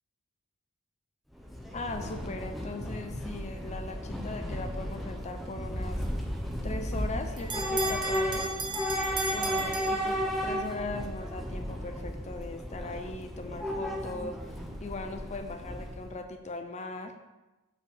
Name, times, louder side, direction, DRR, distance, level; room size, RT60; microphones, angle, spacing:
Train / Subway metro underground, 1.3-16.2, equal, ahead, 0.9 m, -34 dB
voice 1, 1.7-6.0 6.6-8.5 9.3-17.2, left 2 dB, 35° left, 7 dB, 0.6 m, -39 dB
Bell, 6.8-10.6, right 2 dB, 20° right, 1.1 m, -36 dB
7.4 x 5.7 x 6.5 m, 1.1 s
head